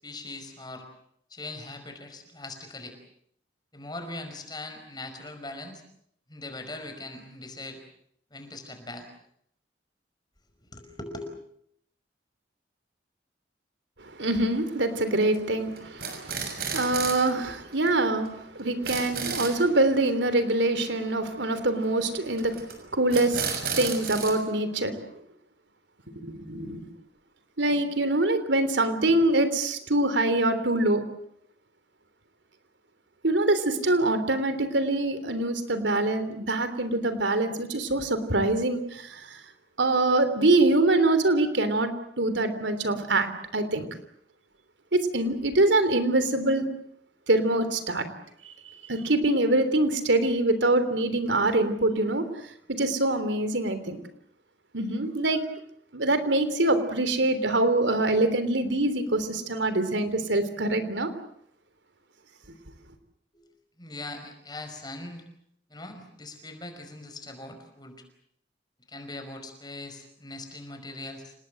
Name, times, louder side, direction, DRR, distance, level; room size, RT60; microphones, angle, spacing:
voice 1, 0.0-0.8 1.3-3.0 3.7-5.8 6.3-7.8 8.3-9.1 10.6-11.3 63.3-63.5 63.8-65.2 65.7-68.0 68.9-71.3, left 2 dB, 25° left, 6 dB, 5.2 m, -40 dB
voice 2, 14.0-25.0 26.2-26.8 27.6-31.0 33.2-39.4 39.8-41.9 42.2-43.3 43.5-43.9 44.9-46.7 47.3-48.1 48.4-52.3 52.8-54.0 54.7-55.4 55.9-61.1, right 2 dB, 85° right, 10 dB, 3.4 m, -24 dB
sound 1, 15.0-15.4 15.8-17.3 17.6-17.7 17.9-18.0 18.3-18.4 18.6-19.6 22.4-22.7 23.1-24.3, right 6 dB, 55° right, 6.5 m, -32 dB
29.5 x 19.5 x 7.8 m, 0.71 s
head